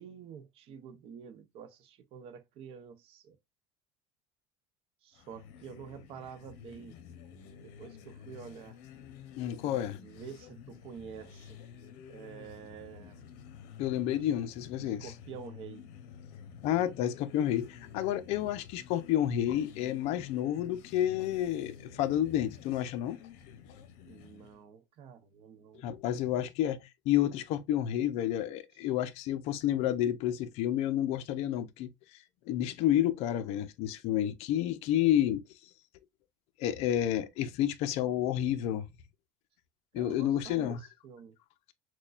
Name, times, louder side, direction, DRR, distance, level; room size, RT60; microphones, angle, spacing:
voice 1, 0.0-3.4 5.0-7.0 7.6-8.8 9.9-11.6 12.1-13.2 14.8-15.8 24.0-25.9 39.9-41.4, right 7 dB, 50° right, 0.7 m, -48 dB
sound 1, 5.1-24.6, left 8 dB, 75° left, 0.9 m, -51 dB
voice 2, 9.4-10.0 13.8-15.1 16.6-23.2 25.8-31.9 32.5-35.4 36.6-38.9 39.9-40.8, left 11 dB, 60° left, 0.6 m, -30 dB
6.0 x 2.2 x 2.4 m
cardioid pair, 145°, 12 cm